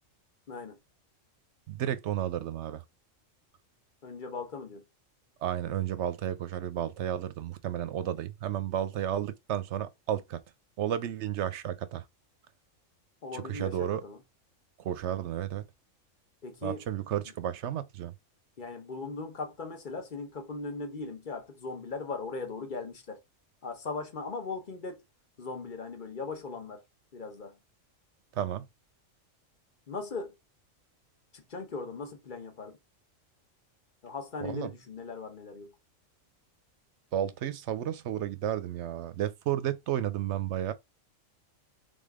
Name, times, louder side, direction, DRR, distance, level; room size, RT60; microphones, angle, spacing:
voice 1, 0.5-0.8 4.0-4.8 13.2-14.2 16.4-16.8 18.6-23.2 23.6-25.0 25.4-26.8 27.1-27.6 29.9-30.3 31.3-32.8 34.0-35.7, left 4 dB, 40° left, 1.0 m, -39 dB
voice 2, 1.7-2.8 5.4-10.4 10.8-12.0 13.3-14.0 14.8-15.6 16.6-18.1 28.3-28.7 34.4-34.7 37.1-40.7, right 11 dB, 70° right, 0.8 m, -32 dB
3.7 x 3.6 x 3.5 m
omnidirectional pair, 1.3 m